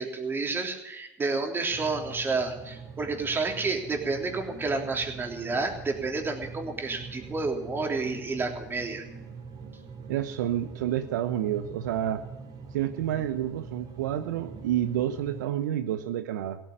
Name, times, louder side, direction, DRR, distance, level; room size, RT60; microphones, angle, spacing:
voice 1, 0.0-9.0, right 3 dB, 20° right, 3 dB, 3.3 m, -30 dB
sound 1, 1.7-15.5, right 5 dB, 40° right, 4.4 m, -44 dB
voice 2, 10.1-12.2 12.7-16.6, right 11 dB, 75° right, 10 dB, 0.9 m, -29 dB
16.5 x 9.2 x 9.2 m, 0.92 s
hypercardioid pair, 90°, 10 cm